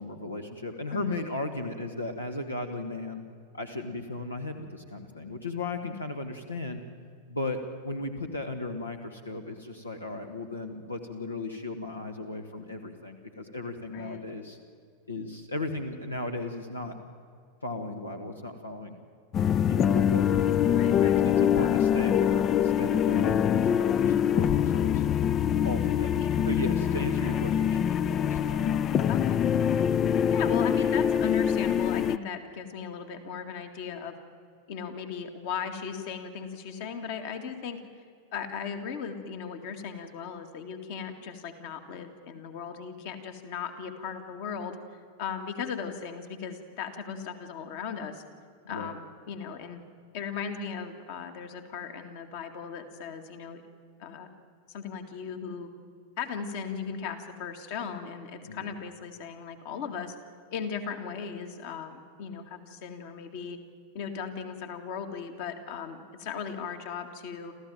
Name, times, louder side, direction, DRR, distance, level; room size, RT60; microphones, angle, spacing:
voice 1, 0.0-3.2 3.5-6.8 7.3-7.6 7.8-14.6 15.1-16.9 17.6-18.9 19.7-25.1 25.6-29.1 48.6-48.9 58.4-58.7, left 2 dB, 80° left, 5 dB, 1.6 m, -36 dB
voice 2, 13.9-14.2 20.7-21.3 26.2-26.5 29.1-29.4 30.3-34.1 34.7-37.8 38.3-44.8 45.2-48.2 48.7-49.8 50.1-53.6 54.0-54.3 54.7-55.7 56.2-60.1 60.5-63.6 63.9-67.5, left 6 dB, 50° left, 7 dB, 2.1 m, -37 dB
sound 1, 19.3-32.2, left 9 dB, 30° left, 0.5 m, -24 dB
28.0 x 14.5 x 9.0 m, 2.1 s
figure-of-eight pair, 90°, 0 cm